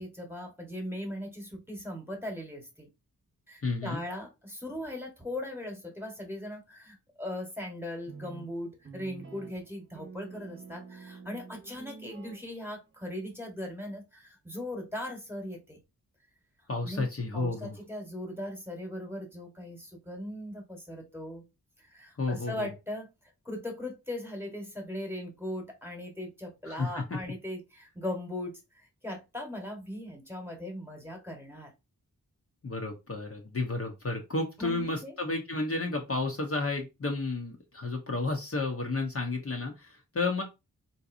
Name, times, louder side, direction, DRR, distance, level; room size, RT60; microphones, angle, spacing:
voice 1, 0.0-2.9 3.5-15.8 16.8-17.1 17.3-21.4 21.8-31.7 34.6-35.1, left 1 dB, 5° right, 1.3 m, -39 dB
voice 2, 3.6-4.0 16.7-17.8 22.2-22.7 26.6-27.2 32.6-40.4, left 3 dB, 40° left, 0.8 m, -32 dB
sound 1, 8.1-12.9, right 5 dB, 30° right, 1.0 m, -48 dB
3.8 x 2.8 x 2.6 m
cardioid pair, 65°, 37 cm